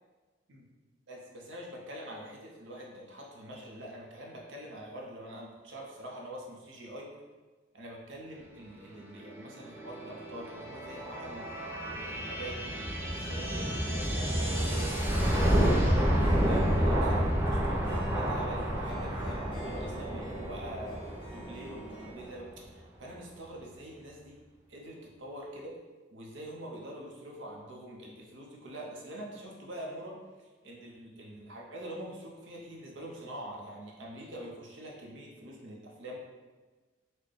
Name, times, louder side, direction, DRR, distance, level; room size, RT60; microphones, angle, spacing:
voice 1, 1.1-7.1 7.7-24.4 24.7-25.7 26.1-36.2, right 1 dB, 75° right, -2 dB, 0.8 m, -45 dB
sound 1, 9.0-22.5, equal, 10° right, 0.5 m, -30 dB
Harp, 14.1-22.1, equal, 30° left, 0.7 m, -48 dB
4.2 x 2.2 x 3.2 m, 1.3 s
head